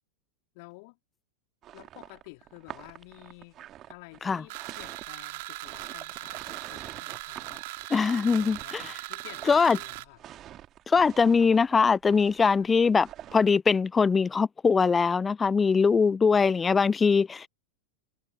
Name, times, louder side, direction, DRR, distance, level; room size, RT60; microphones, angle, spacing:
voice 1, 0.5-1.0 1.7-7.6 8.4-10.2 12.6-12.7 15.8-16.8, left 29 dB, 45° left, 3.4 m, -51 dB
sound 1, 1.6-13.5, right 12 dB, 30° right, 2.8 m, -47 dB
sound 2, 4.5-10.0, right 22 dB, 50° right, 2.3 m, -40 dB
voice 2, 7.9-8.8 9.5-9.8 10.9-17.5, left 5 dB, 15° left, 0.3 m, -22 dB
figure-of-eight pair, 90°, 0 cm